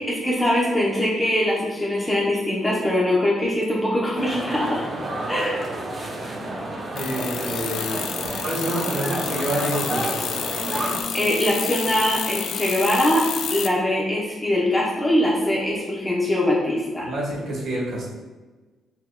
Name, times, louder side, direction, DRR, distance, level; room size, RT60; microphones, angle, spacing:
voice 1, 0.0-4.8 5.3-5.6 11.1-17.1, left 1 dB, 15° left, -4 dB, 0.8 m, -22 dB
sound 1, 4.2-11.0, right 1 dB, 35° right, 0.6 m, -30 dB
voice 2, 6.9-7.9 8.4-10.4 17.0-18.1, right 1 dB, 75° right, -3 dB, 1.3 m, -28 dB
sound 2, 7.0-13.7, left 8 dB, 75° left, 0.3 m, -30 dB
5.9 x 2.7 x 2.2 m, 1.3 s
cardioid pair, 90°, 0 cm